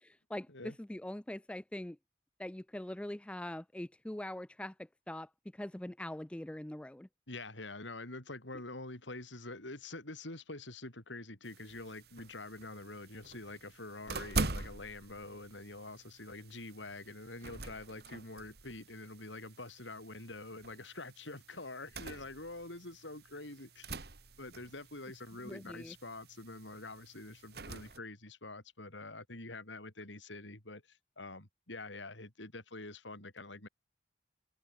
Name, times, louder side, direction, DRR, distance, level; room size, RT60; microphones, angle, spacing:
voice 1, 0.0-2.0 2.4-7.1 25.4-26.0, left 1 dB, 5° left, 0.3 m, -43 dB
voice 2, 7.3-23.9 24.4-33.7, left 2 dB, 85° left, 5.2 m, -46 dB
sound 1, 11.4-28.0, right 3 dB, 55° right, 2.1 m, -45 dB
head